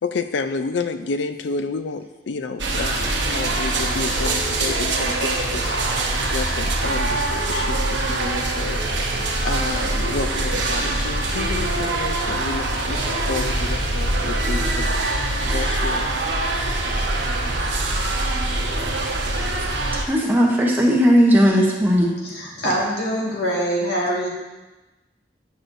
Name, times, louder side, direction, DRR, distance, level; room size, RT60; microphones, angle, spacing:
voice 1, 0.0-14.9 15.4-16.1, left 4 dB, 80° left, 9 dB, 0.5 m, -30 dB
sound 1, 2.6-20.0, right 2 dB, 90° right, 0.9 m, -23 dB
voice 2, 20.0-22.1, equal, 10° right, -2 dB, 0.8 m, -16 dB
voice 3, 22.2-24.3, equal, 65° left, -4 dB, 1.9 m, -24 dB
9.3 x 6.1 x 2.6 m, 1.1 s
head